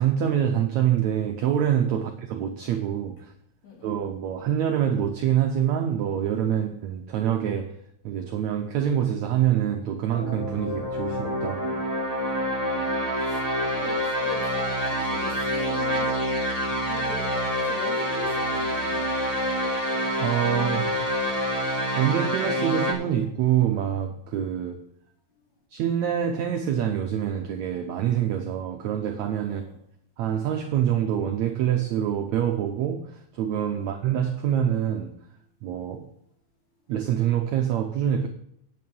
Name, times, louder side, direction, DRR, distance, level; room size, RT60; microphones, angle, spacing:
voice 1, 0.0-3.3 3.8-7.8 8.0-11.8 20.2-20.9 22.0-24.8 25.7-29.6 30.2-35.1 35.6-36.1 36.9-38.3, right 10 dB, 85° right, 1.6 m, -25 dB
sound 1, 10.1-22.9, equal, 40° left, 0.5 m, -27 dB
voice 2, 12.6-16.2 16.7-19.1 29.4-29.8 33.7-33.9, left 2 dB, 55° left, 4.5 m, -41 dB
9.5 x 8.3 x 5.4 m
omnidirectional pair, 4.2 m